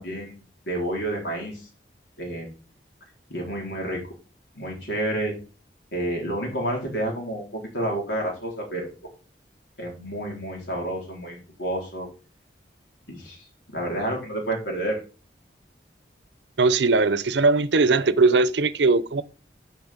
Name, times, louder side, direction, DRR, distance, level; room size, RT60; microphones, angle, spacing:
voice 1, 0.0-1.6 2.2-2.5 3.3-4.0 4.5-5.3 5.9-8.9 9.8-12.1 13.1-13.4 13.7-15.0, right 1 dB, 90° left, 4.1 m, -29 dB
voice 2, 16.6-19.2, right 3 dB, 80° right, 0.7 m, -20 dB
7.3 x 5.9 x 7.3 m
head